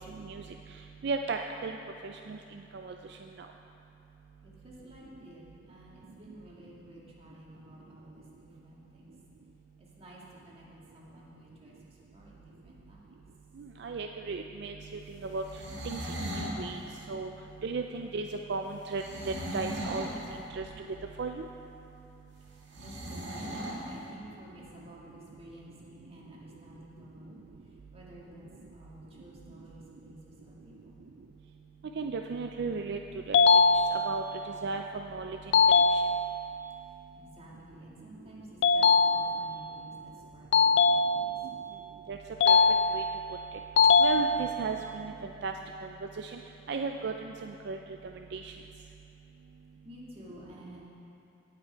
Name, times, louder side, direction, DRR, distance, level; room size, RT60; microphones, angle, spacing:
voice 1, 1.0-1.8 2.0-2.4 2.7-3.0 13.6-15.4 15.8-16.8 17.1-17.3 17.6-20.1 20.5-20.7 21.2-21.5 32.0-33.0 33.3-33.4 33.7-34.2 34.6-34.8 35.1-35.4 35.9-36.0 42.1-42.2 42.5-42.6 42.9-43.0 44.0-45.1 45.4-45.5 46.2-46.4 46.7-47.8 48.3-48.5, right 4 dB, 65° right, 4 dB, 0.4 m, -35 dB
voice 2, 4.4-5.4 5.7-9.1 9.8-11.8 12.1-13.0 22.8-27.4 27.9-28.4 28.7-31.0 37.2-41.4 49.8-50.9, equal, 35° right, -5 dB, 2.0 m, -52 dB
sound 1, 15.3-16.6 18.9-20.2 22.7-23.8, right 1 dB, 90° right, 2.0 m, -37 dB
sound 2, 33.3-34.4 35.5-36.5 38.6-39.6 40.5-41.6 42.4-43.3 43.8-44.8, left 4 dB, 70° left, 0.3 m, -23 dB
18.0 x 6.1 x 4.5 m, 2.8 s
head